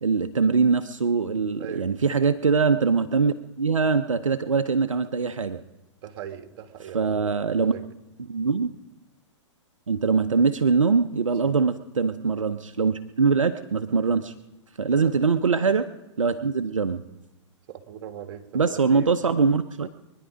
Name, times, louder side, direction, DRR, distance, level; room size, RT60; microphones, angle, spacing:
voice 1, 0.0-5.6 6.9-7.7 8.3-8.7 9.9-14.3 14.8-15.9 16.2-17.0 18.5-19.9, right 5 dB, 85° right, 10 dB, 0.7 m, -23 dB
voice 2, 6.0-7.8 11.4-11.5 15.0-15.2 17.7-19.1, right 9 dB, 50° right, 6 dB, 1.9 m, -39 dB
24.0 x 10.5 x 5.0 m, 1.0 s
figure-of-eight pair, 110°, 16 cm